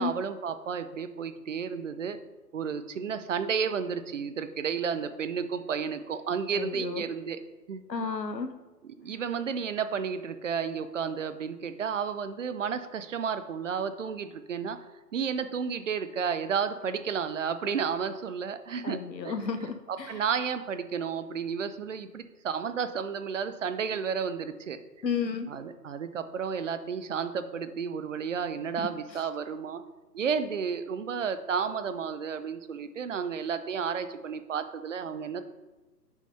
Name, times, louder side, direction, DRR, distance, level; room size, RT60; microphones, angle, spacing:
voice 1, 0.0-2.2 2.5-7.4 7.7-7.8 9.0-14.8 15.1-19.0 19.2-19.3 19.9-24.8 25.5-29.8 30.1-35.4, right 6 dB, 50° right, 11 dB, 0.7 m, -32 dB
voice 2, 6.5-7.0 7.9-8.5 18.8-20.2 25.0-25.5 28.8-28.9, left 5 dB, 85° left, 9 dB, 1.1 m, -32 dB
6.0 x 5.7 x 5.5 m, 1.2 s
figure-of-eight pair, 140°, 50 cm